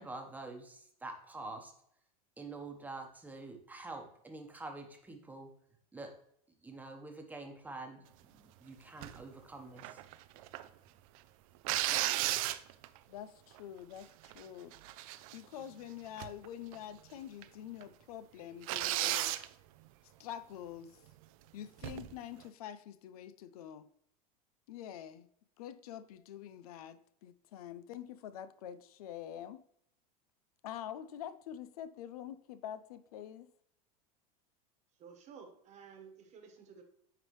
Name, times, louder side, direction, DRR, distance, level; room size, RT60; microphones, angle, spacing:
voice 1, 0.0-1.7 2.4-5.5 5.9-6.1 6.6-8.1 8.3-10.0, right 2 dB, 10° right, 1.0 m, -46 dB
sound 1, 9.0-9.2 9.8-10.7 11.6-13.0 13.6-13.7 14.0-14.4 14.7-15.6 16.2-16.5 16.7-16.8 17.4-17.5 17.8-17.9 18.6-19.5 21.8-22.1, right 15 dB, 65° right, 0.4 m, -34 dB
voice 2, 13.1-14.7 15.3-19.3 20.2-21.0 21.5-23.9 24.7-25.3 25.6-29.6 30.6-33.5, left 10 dB, 85° left, 0.5 m, -46 dB
voice 3, 35.0-36.8, right 6 dB, 40° right, 1.2 m, -53 dB
9.6 x 3.3 x 3.1 m
supercardioid pair, 120°, 19 cm